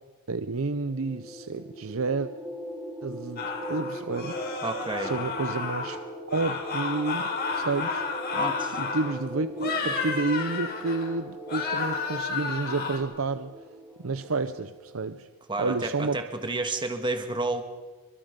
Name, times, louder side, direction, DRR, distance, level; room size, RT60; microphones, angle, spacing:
voice 1, 0.3-2.3 3.0-4.6 5.0-6.0 6.3-8.1 8.8-13.5 14.0-15.3 15.6-16.2, right 3 dB, 80° right, 11 dB, 0.8 m, -30 dB
sound 1, 0.8-15.1, right 1 dB, ahead, 4.6 m, -41 dB
sound 2, 3.4-6.0 6.3-9.2 9.6-11.1 11.5-13.0, left 4 dB, 50° left, 4.8 m, -31 dB
voice 2, 4.6-5.1 8.3-8.8 15.5-17.6, right 2 dB, 25° right, 6 dB, 1.8 m, -30 dB
27.0 x 24.0 x 5.3 m, 1.3 s
head